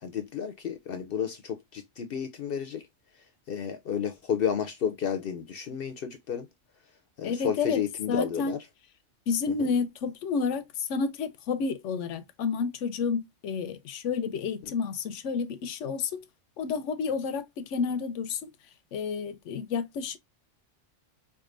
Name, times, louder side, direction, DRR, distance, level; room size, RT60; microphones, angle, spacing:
voice 1, 0.0-2.8 3.1-6.5 7.2-8.6 9.6-9.7 14.6-14.7, left 8 dB, 60° left, 0.7 m, -32 dB
voice 2, 7.2-7.8 8.1-8.6 9.3-16.2 16.6-18.5 18.9-20.2, left 5 dB, 85° left, 0.9 m, -30 dB
4.7 x 2.5 x 2.4 m
omnidirectional pair, 1.2 m